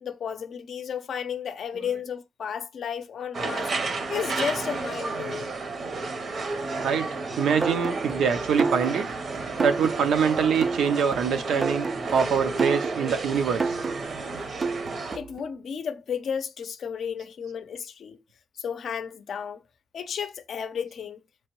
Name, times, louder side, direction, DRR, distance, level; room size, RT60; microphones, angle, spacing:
voice 1, 0.0-3.7 4.1-5.6 15.1-18.2 18.6-19.6 19.9-21.2, left 7 dB, 65° left, 0.5 m, -33 dB
sound 1, 3.3-15.2, right 3 dB, 50° right, 0.7 m, -32 dB
voice 2, 6.8-9.1 9.6-13.8, right 6 dB, 85° right, 0.6 m, -24 dB
sound 2, 7.6-15.4, right 4 dB, 35° right, 0.3 m, -31 dB
4.4 x 3.0 x 3.0 m
cardioid pair, 120°, 0 cm